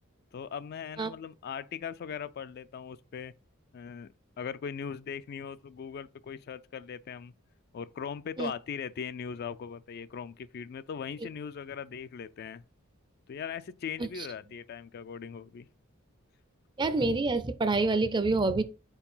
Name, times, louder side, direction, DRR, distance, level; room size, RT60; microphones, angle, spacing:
voice 1, 0.3-3.3 3.7-4.1 4.4-7.3 7.7-12.6 13.3-15.7, left 7 dB, 50° left, 0.3 m, -39 dB
voice 2, 16.8-18.6, right 3 dB, 20° right, 0.4 m, -27 dB
4.7 x 4.5 x 5.4 m
head